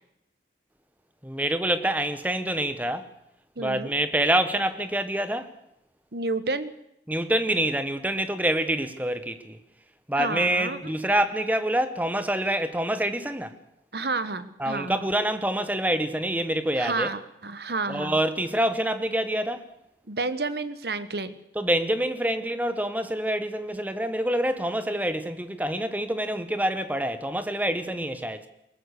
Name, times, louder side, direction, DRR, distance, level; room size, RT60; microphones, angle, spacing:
voice 1, 1.2-3.1 3.6-5.5 7.1-9.6 10.1-13.5 14.6-17.1 17.9-19.6 21.5-28.5, right 1 dB, 10° right, 1.2 m, -26 dB
voice 2, 3.6-3.9 6.1-6.7 10.2-10.9 13.9-15.1 16.8-18.2 20.1-21.4, right 3 dB, 65° right, 1.2 m, -30 dB
22.0 x 19.0 x 6.7 m
head